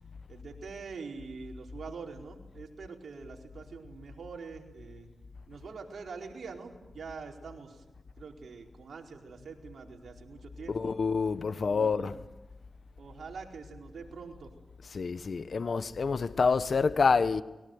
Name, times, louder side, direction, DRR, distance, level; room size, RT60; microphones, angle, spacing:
voice 1, 0.3-5.1 5.5-7.8 8.2-11.0 11.6-12.1 13.0-14.5, right 5 dB, 75° right, 4.6 m, -44 dB
voice 2, 10.7-12.2 14.9-17.4, left 5 dB, 65° left, 1.1 m, -27 dB
30.0 x 22.5 x 8.0 m
cardioid pair, 60°, 0 cm